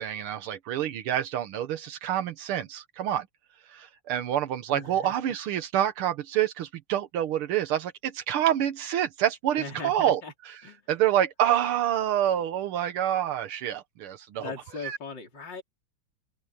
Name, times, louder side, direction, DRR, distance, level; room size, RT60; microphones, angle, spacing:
voice 1, 0.0-3.3 3.7-10.2 10.5-10.6 10.9-14.5 14.8-15.0, right 11 dB, 85° right, 1.9 m, -27 dB
voice 2, 4.7-5.1 9.6-10.3 10.6-10.8 14.4-15.6, left 4 dB, 55° left, 4.1 m, -39 dB
open air
omnidirectional pair, 2.3 m